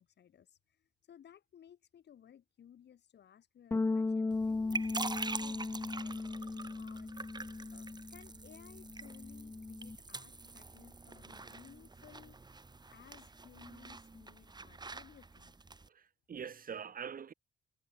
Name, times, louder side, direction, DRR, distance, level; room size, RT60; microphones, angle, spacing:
voice 1, 0.0-6.2 6.7-7.3 7.7-12.4 12.9-15.7, left 9 dB, 60° left, 3.0 m, -59 dB
sound 1, 3.7-8.3 8.5-10.0, left 3 dB, 15° left, 0.4 m, -37 dB
sound 2, 4.3-15.9, right 3 dB, 20° right, 2.0 m, -45 dB
voice 2, 15.9-17.3, right 7 dB, 45° right, 1.8 m, -44 dB
cardioid pair, 90°, 20 cm